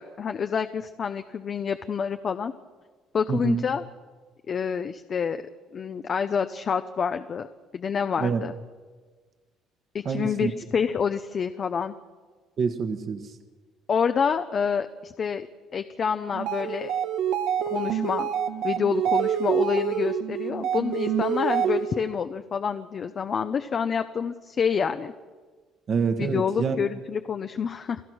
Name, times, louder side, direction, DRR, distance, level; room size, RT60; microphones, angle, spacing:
voice 1, 0.0-2.5 3.1-3.8 4.5-5.4 5.7-7.5 7.7-8.5 9.9-12.0 13.9-15.5 15.7-16.9 17.7-18.3 18.6-25.1 26.2-28.0, left 6 dB, 35° left, 8 dB, 0.7 m, -27 dB
voice 2, 3.3-3.7 8.2-8.4 10.0-10.5 12.6-13.3 25.9-26.8, right 5 dB, 40° right, 7 dB, 1.3 m, -26 dB
sound 1, 16.3-22.1, right 9 dB, 85° right, 1.6 m, -27 dB
28.5 x 16.5 x 6.3 m, 1.4 s
cardioid pair, 150°, 0 cm